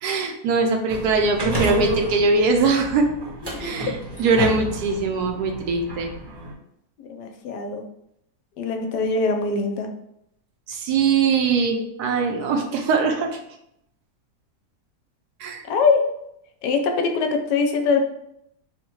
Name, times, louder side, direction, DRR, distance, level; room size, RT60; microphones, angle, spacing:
voice 1, 0.0-3.1 3.6-3.9 4.2-6.1 10.7-13.4 15.4-15.6, right 4 dB, 75° right, 3 dB, 1.1 m, -21 dB
sound 1, 0.9-6.5, right 1 dB, 25° right, 0.6 m, -30 dB
voice 2, 3.4-3.9 7.0-7.8 8.6-9.9 15.7-16.0 16.6-18.0, left 4 dB, 80° left, 5 dB, 1.2 m, -23 dB
3.9 x 2.2 x 4.4 m, 0.77 s
omnidirectional pair, 1.8 m